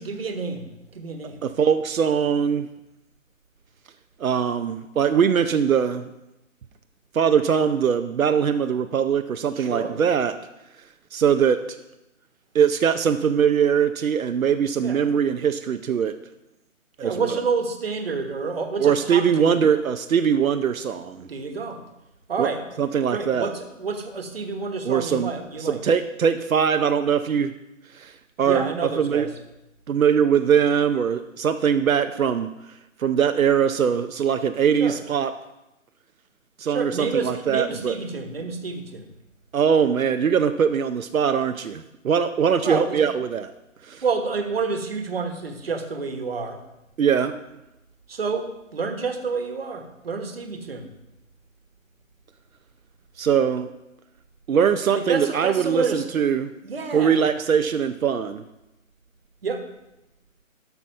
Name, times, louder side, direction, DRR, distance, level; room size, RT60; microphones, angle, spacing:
voice 1, 0.0-1.5 9.5-10.0 14.8-15.0 17.0-19.7 21.3-21.8 22.3-22.6 23.1-25.8 28.4-29.3 34.8-35.0 36.7-39.1 42.6-43.0 44.0-46.6 48.1-50.9 54.9-56.1 56.6-57.3 59.4-59.7, right 4 dB, 45° right, 6 dB, 1.4 m, -29 dB
voice 2, 1.4-2.7 4.2-6.1 7.1-10.3 11.1-11.6 12.5-16.1 17.0-17.1 18.8-21.3 22.4-22.5 22.8-23.5 24.8-25.3 25.7-27.5 27.9-29.3 29.9-32.5 33.0-35.3 36.6-37.9 39.5-43.5 43.8-44.0 47.0-47.4 53.2-53.7 54.5-56.5 56.9-58.4, right 7 dB, 80° right, 9 dB, 0.7 m, -21 dB
12.5 x 5.9 x 5.5 m, 0.92 s
hypercardioid pair, 175°, 41 cm